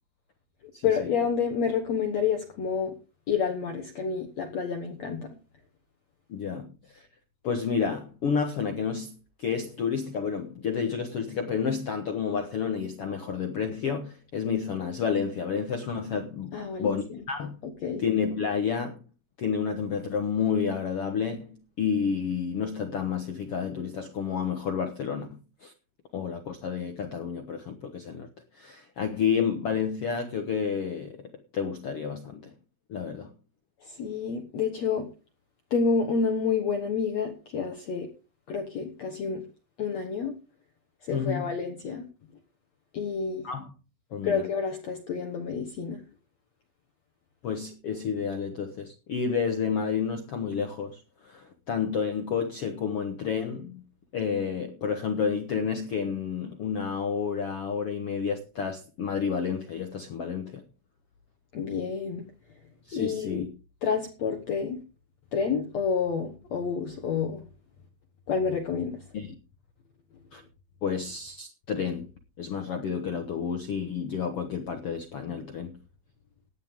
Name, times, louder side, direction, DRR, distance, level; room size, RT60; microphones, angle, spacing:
voice 1, 0.8-2.9 3.3-5.4 16.5-17.0 17.6-18.0 33.8-35.1 35.7-38.1 38.5-39.4 39.8-40.3 41.0-42.1 42.9-43.5 44.2-46.0 61.5-62.3 62.9-63.4 63.8-64.8 65.3-67.4 68.3-69.0, left 6 dB, 60° left, 2.0 m, -29 dB
voice 2, 6.3-7.1 7.4-17.6 18.0-19.0 19.4-25.7 26.1-28.3 28.5-32.5 32.9-33.3 41.1-41.5 43.4-43.7 44.1-44.5 47.4-53.8 54.1-60.6 62.9-63.5 69.1-69.4 70.3-70.4 70.8-72.1 72.4-75.8, left 6 dB, 75° left, 1.3 m, -30 dB
16.5 x 10.5 x 3.7 m
omnidirectional pair, 4.5 m